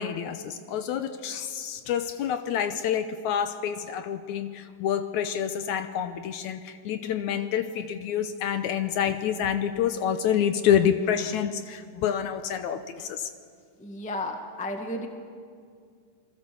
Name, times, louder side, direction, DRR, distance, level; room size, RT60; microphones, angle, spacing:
voice 1, 0.0-13.3, left 9 dB, 75° left, 9 dB, 2.0 m, -28 dB
voice 2, 13.8-15.1, left 1 dB, 5° left, 4 dB, 0.9 m, -33 dB
27.5 x 21.5 x 7.0 m, 2.2 s
omnidirectional pair, 3.8 m